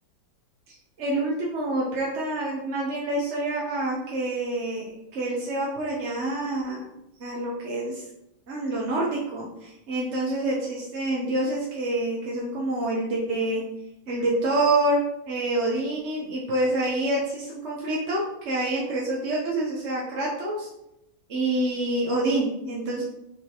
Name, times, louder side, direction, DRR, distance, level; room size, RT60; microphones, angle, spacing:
voice 1, 0.7-4.8 5.1-6.8 7.2-8.0 8.5-13.6 14.1-15.0 15.3-20.7 21.3-23.0, right 2 dB, 45° right, -3 dB, 1.0 m, -27 dB
6.6 x 5.1 x 2.9 m, 0.85 s
omnidirectional pair, 2.1 m